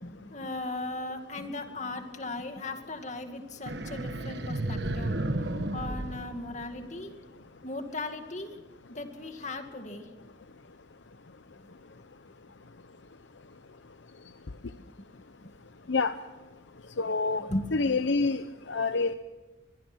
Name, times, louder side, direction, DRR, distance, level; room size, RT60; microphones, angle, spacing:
voice 1, 0.0-5.2 5.7-7.1 7.6-8.5 8.9-10.3 11.6-11.7 17.4-17.7, left 2 dB, 40° left, 6 dB, 2.2 m, -37 dB
sound 1, 3.7-7.1, right 1 dB, 70° right, 1.3 m, -33 dB
voice 2, 17.0-17.4 17.7-18.4 18.7-19.1, left 4 dB, 85° left, 10 dB, 0.8 m, -26 dB
23.5 x 21.5 x 6.2 m, 1.1 s
head